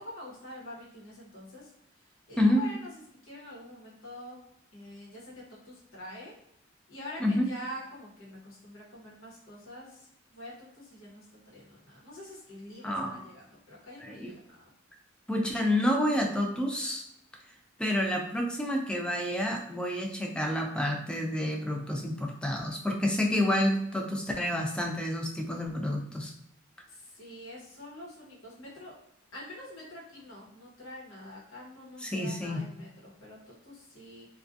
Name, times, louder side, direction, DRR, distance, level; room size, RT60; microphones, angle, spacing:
voice 1, 0.0-1.7 2.3-2.9 3.2-4.4 4.7-6.3 6.9-14.6 26.9-29.0 29.3-34.3, left 1 dB, 80° left, -5 dB, 1.0 m, -46 dB
voice 2, 12.8-13.2 14.0-14.3 15.3-17.0 17.8-26.3 32.0-32.6, left 1 dB, 5° left, 2 dB, 0.3 m, -29 dB
2.4 x 2.2 x 2.5 m, 0.76 s
head